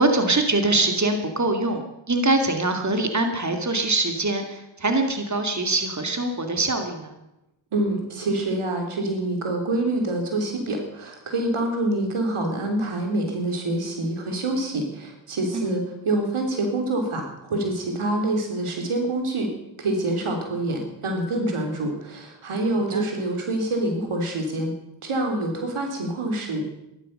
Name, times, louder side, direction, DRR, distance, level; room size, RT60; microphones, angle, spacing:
voice 1, 0.0-7.2 15.5-15.8 22.9-23.0, right 2 dB, 35° right, 5 dB, 2.5 m, -23 dB
voice 2, 7.7-19.5 19.8-24.7 25.0-26.7, right 2 dB, 85° right, 3 dB, 3.4 m, -26 dB
14.0 x 12.0 x 6.6 m, 0.86 s
cardioid pair, 40°, 49 cm